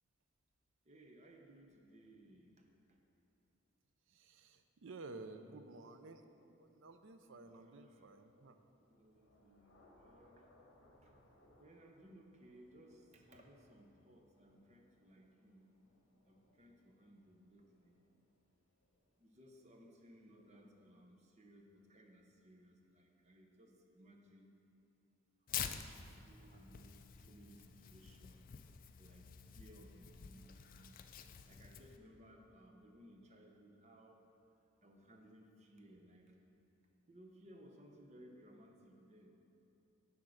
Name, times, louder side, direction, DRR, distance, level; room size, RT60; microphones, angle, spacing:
voice 1, 0.8-3.0 7.4-8.1 8.8-10.6 11.0-11.1 11.6-15.6 16.2-18.0 19.2-24.5 25.5-28.4 29.0-30.9 31.5-34.2 34.8-36.4 37.1-39.3, right 1 dB, 35° right, 2 dB, 0.8 m, -61 dB
voice 2, 4.1-8.6, right 3 dB, 65° right, 8 dB, 0.5 m, -53 dB
Thunder / Rain, 8.1-19.7, left 1 dB, 70° left, 1.3 m, -71 dB
Tearing, 25.5-32.0, left 9 dB, 40° left, 0.3 m, -48 dB
10.0 x 3.6 x 6.4 m, 2.9 s
head